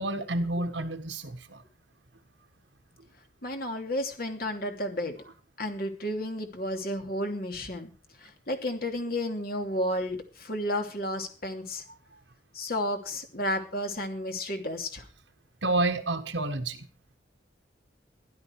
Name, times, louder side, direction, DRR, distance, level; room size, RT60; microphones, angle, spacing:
voice 1, 0.0-1.6 15.6-16.9, right 2 dB, 75° right, 7 dB, 1.7 m, -29 dB
voice 2, 3.4-5.2 5.6-7.9 8.2-11.8 12.5-15.1, left 1 dB, 50° left, 4 dB, 2.9 m, -32 dB
15.5 x 12.0 x 4.8 m, 0.36 s
head